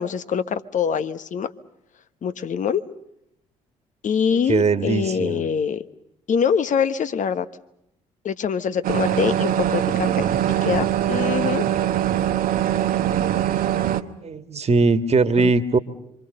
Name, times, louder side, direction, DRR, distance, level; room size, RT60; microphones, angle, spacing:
voice 1, 0.0-1.5 2.2-2.8 4.0-5.8 6.3-7.5 8.2-10.3 10.6-11.6 15.4-15.5, left 7 dB, 50° left, 12 dB, 1.2 m, -24 dB
voice 2, 4.5-5.4 14.0-15.8, right 4 dB, 40° right, 11 dB, 1.8 m, -20 dB
sound 1, 8.8-14.0, right 11 dB, 60° right, 1.0 m, -22 dB
27.0 x 24.5 x 6.7 m, 0.81 s
hypercardioid pair, 50°, 17 cm